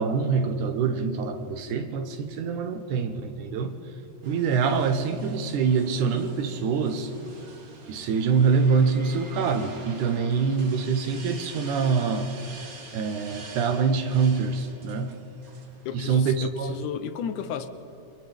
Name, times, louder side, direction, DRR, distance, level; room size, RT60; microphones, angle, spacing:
voice 1, 0.0-3.8 4.2-7.1 7.9-12.5 12.9-15.2 15.9-16.8, right 5 dB, 85° right, 2.6 m, -25 dB
sound 1, 4.2-16.2, right 3 dB, 35° right, 1.7 m, -46 dB
voice 2, 15.9-17.7, left 8 dB, 90° left, 2.4 m, -33 dB
29.0 x 26.0 x 3.6 m
omnidirectional pair, 3.4 m